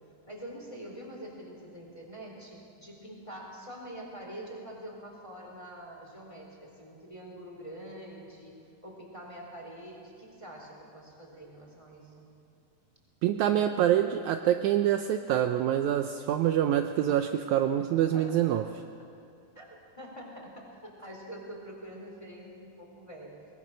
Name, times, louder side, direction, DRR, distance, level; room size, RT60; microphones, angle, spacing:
voice 1, 0.3-8.6 8.8-12.3 17.8-18.5 19.5-23.4, right 1 dB, 10° left, -2 dB, 3.6 m, -45 dB
voice 2, 13.2-18.6, right 11 dB, 80° right, 6 dB, 1.7 m, -26 dB
22.0 x 19.5 x 6.3 m, 2.5 s
omnidirectional pair, 4.1 m